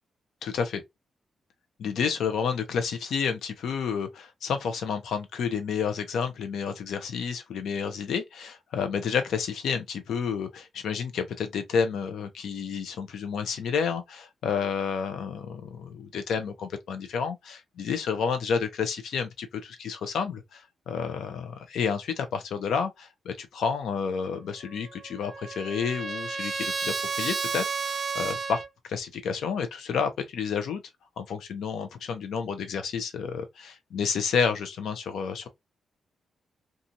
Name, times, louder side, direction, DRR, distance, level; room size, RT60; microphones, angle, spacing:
voice 1, 0.4-0.8 1.8-28.6 28.9-30.8 31.2-35.5, left 6 dB, 85° left, 0.6 m, -30 dB
Trumpet, 24.8-28.7, right 5 dB, 35° right, 0.3 m, -32 dB
2.7 x 2.4 x 2.7 m
wide cardioid pair, 135°, 0 cm